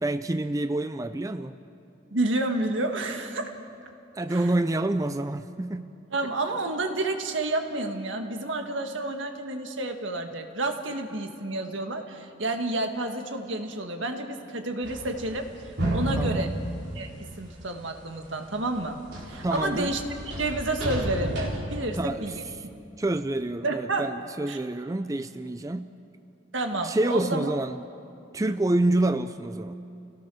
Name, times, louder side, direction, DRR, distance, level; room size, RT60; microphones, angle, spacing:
voice 1, 0.0-1.5 4.2-5.9 16.2-16.6 19.4-19.9 21.9-22.3 23.0-25.9 26.8-27.8 28.3-29.7, right 2 dB, 15° right, 10 dB, 0.4 m, -27 dB
voice 2, 2.1-3.5 4.3-4.5 6.1-15.5 15.9-16.6 17.0-19.0 19.3-20.0 20.4-22.4 23.6-24.1 24.5-24.6 26.5-27.5, right 2 dB, 80° right, 5 dB, 1.8 m, -30 dB
sound 1, 14.8-17.8 18.2-21.6, right 1 dB, 60° right, 4.7 m, -32 dB
29.0 x 17.5 x 6.2 m, 2.6 s
head